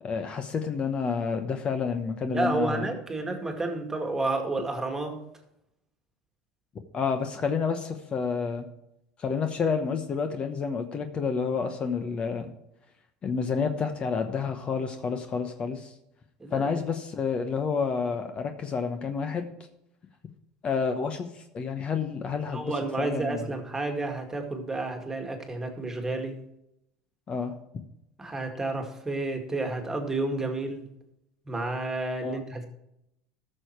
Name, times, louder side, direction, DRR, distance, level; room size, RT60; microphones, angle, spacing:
voice 1, 0.0-2.9 6.9-8.6 9.2-12.5 13.2-15.9 16.5-19.4 20.6-23.5 27.3-27.8 32.2-32.4, left 5 dB, 30° left, 7 dB, 1.0 m, -29 dB
voice 2, 2.3-5.2 16.4-16.7 22.5-26.4 28.2-30.9 31.5-32.6, right 2 dB, 15° right, 4 dB, 2.1 m, -31 dB
13.0 x 6.7 x 4.6 m, 0.81 s
supercardioid pair, 115°, 3 cm